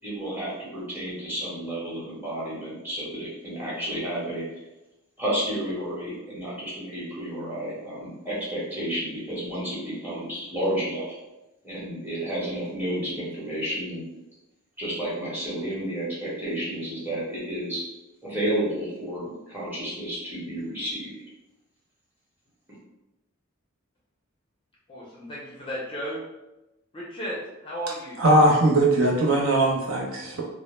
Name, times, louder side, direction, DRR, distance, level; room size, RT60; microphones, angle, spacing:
voice 1, 0.0-4.4 5.2-11.1 11.6-14.0 14.8-17.8 18.2-21.1, right 1 dB, 10° right, -8 dB, 0.9 m, -31 dB
voice 2, 24.9-26.2 26.9-28.2, equal, 25° left, -5 dB, 0.4 m, -34 dB
voice 3, 28.2-30.4, right 1 dB, 70° right, -2 dB, 0.6 m, -20 dB
2.1 x 2.0 x 3.0 m, 0.98 s
head